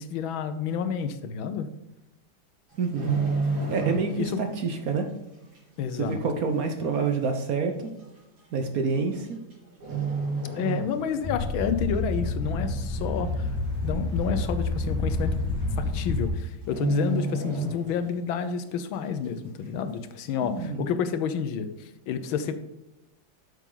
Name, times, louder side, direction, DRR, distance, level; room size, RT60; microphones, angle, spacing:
voice 1, 0.0-1.7 4.2-4.4 5.8-6.2 10.5-13.5 13.8-15.3 15.8-22.6, left 7 dB, 85° left, 10 dB, 1.6 m, -30 dB
sound 1, 2.7-4.4 4.7-5.0 5.5-5.6 6.5-6.6 6.9-7.0 7.8-8.0 9.1-9.5 9.8-11.4 11.7-11.9 12.4-12.9 13.3-13.4 13.6-13.7 14.1-14.2 15.2-15.3 15.6-15.9 16.1-16.3 16.6-18.3 18.6-18.7, right 4 dB, 85° right, 4.3 m, -30 dB
voice 2, 2.8-3.1 3.7-5.1 5.9-7.9 8.5-9.4 20.4-20.9, right 4 dB, 60° right, 5 dB, 1.1 m, -28 dB
sound 2, 11.2-16.3, left 2 dB, 10° left, 1.2 m, -28 dB
8.3 x 7.1 x 3.8 m, 0.96 s
omnidirectional pair, 2.1 m